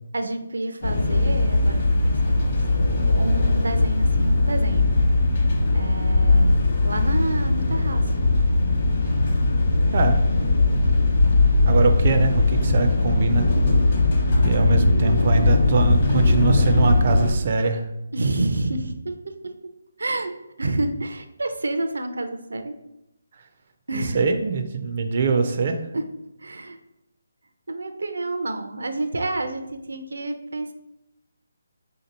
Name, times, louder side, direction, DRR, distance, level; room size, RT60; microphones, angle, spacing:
voice 1, 0.1-2.6 3.2-4.9 5.7-6.6 6.8-8.0 10.8-11.0 14.6-14.9 18.1-19.5 20.0-20.3 20.6-22.8 23.9-24.2 25.9-26.0 26.4-26.8 27.7-30.7, right 2 dB, 90° right, 7 dB, 0.5 m, -29 dB
sound 1, 0.8-17.3, left 2 dB, 40° left, 0.8 m, -19 dB
voice 2, 11.6-13.5 14.4-17.8 23.9-25.8, right 5 dB, 35° right, 6 dB, 0.3 m, -23 dB
3.7 x 2.8 x 3.9 m, 0.87 s
hypercardioid pair, 175°, 0 cm